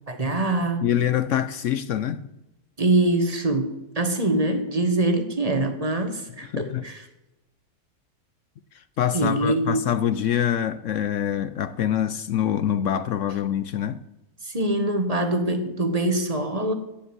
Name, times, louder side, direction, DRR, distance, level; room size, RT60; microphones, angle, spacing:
voice 1, 0.1-0.9 2.8-7.0 9.1-9.8 14.4-16.7, right 2 dB, 25° right, 1.5 m, -24 dB
voice 2, 0.8-2.3 6.5-6.8 8.7-14.0, left 10 dB, 65° left, 0.8 m, -25 dB
15.0 x 5.3 x 9.7 m
omnidirectional pair, 1.7 m